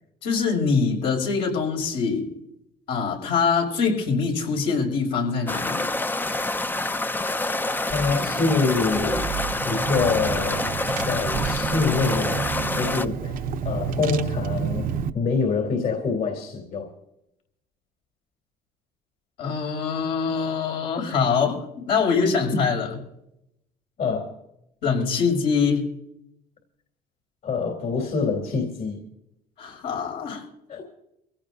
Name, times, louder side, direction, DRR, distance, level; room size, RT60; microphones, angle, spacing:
voice 1, 0.2-2.3 2.9-5.8 19.4-22.9 24.8-25.8 29.6-30.4, left 5 dB, 85° left, -1 dB, 6.6 m, -24 dB
sound 1, 5.5-13.1, left 2 dB, 10° left, 0.5 m, -27 dB
voice 2, 7.9-9.3 9.6-10.7 11.0-14.9 15.1-16.9 24.0-24.3 27.4-29.1 30.7-30.8, left 4 dB, 60° left, 1 dB, 3.2 m, -26 dB
Car / Engine, 7.9-15.1, right 7 dB, 55° right, 0.8 m, -30 dB
25.0 x 17.0 x 2.7 m, 0.83 s
cardioid pair, 110°, 17 cm